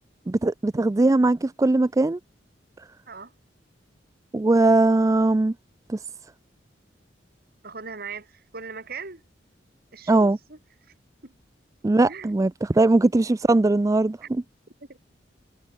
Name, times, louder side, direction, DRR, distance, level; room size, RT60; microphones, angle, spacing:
voice 1, 0.3-2.2 4.3-5.5 5.9-6.0 10.1-10.4 11.8-14.2, right 2 dB, 20° right, 0.3 m, -20 dB
voice 2, 7.6-9.2 9.9-10.6 11.2-11.3 12.1-12.4 14.2-14.3 14.9-15.0, right 5 dB, 55° right, 2.7 m, -39 dB
head